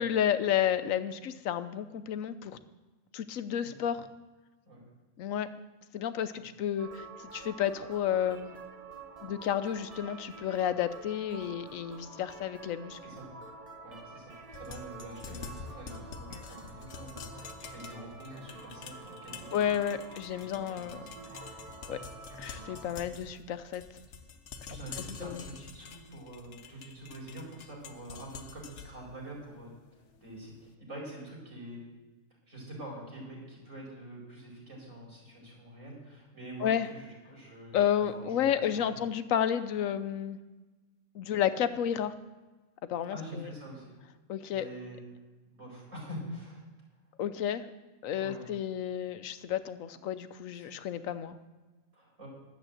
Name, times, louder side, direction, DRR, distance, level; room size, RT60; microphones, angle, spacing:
voice 1, 0.0-2.6 3.1-4.1 5.2-5.5 5.9-7.1 7.3-8.5 9.2-13.0 19.5-21.0 21.9-22.0 22.4-23.8 25.0-25.5 36.6-36.9 37.7-40.4 41.1-42.1 42.9-43.5 44.3-44.7 47.2-47.7 48.0-51.4, left 9 dB, 85° left, 12 dB, 1.1 m, -31 dB
sound 1, 6.8-23.0, right 4 dB, 30° right, 1.0 m, -48 dB
voice 2, 13.8-19.6 20.4-21.1 21.9-22.0 23.0-23.1 24.7-29.7 30.2-31.8 32.5-39.0 43.1-43.9 44.5-45.0 45.5-46.6 48.2-48.5 49.9-50.0 50.5-50.8 51.9-52.3, right 1 dB, 70° right, -4 dB, 5.3 m, -46 dB
sound 2, 14.5-30.5, left 6 dB, 65° left, 1.1 m, -48 dB
11.5 x 7.4 x 7.8 m, 1.2 s
omnidirectional pair, 1.4 m